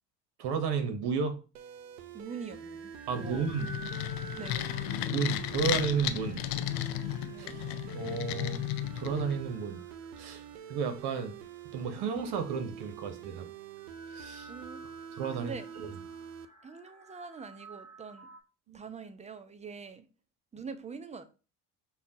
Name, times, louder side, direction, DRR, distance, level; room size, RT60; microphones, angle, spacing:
voice 1, 0.4-1.4 3.1-3.7 5.1-6.4 7.4-7.6 7.9-8.6 8.9-9.8 10.2-10.4 10.7-11.4 11.7-13.5 14.1-14.5 15.2-15.9 18.7-18.8, right 6 dB, 55° right, 1.0 m, -32 dB
sound 1, 1.5-16.5, right 8 dB, 85° right, 0.5 m, -46 dB
voice 2, 2.1-2.9 3.2-3.5 4.3-4.7 7.3-7.6 14.5-14.8 15.3-15.7 16.6-18.3 18.7-20.0 20.5-21.2, right 5 dB, 15° right, 0.5 m, -44 dB
sound 2, 2.3-18.4, right 1 dB, 35° right, 1.3 m, -52 dB
sound 3, 3.2-9.5, left 13 dB, 55° left, 0.5 m, -34 dB
5.5 x 2.3 x 2.7 m
hypercardioid pair, 65°, 45 cm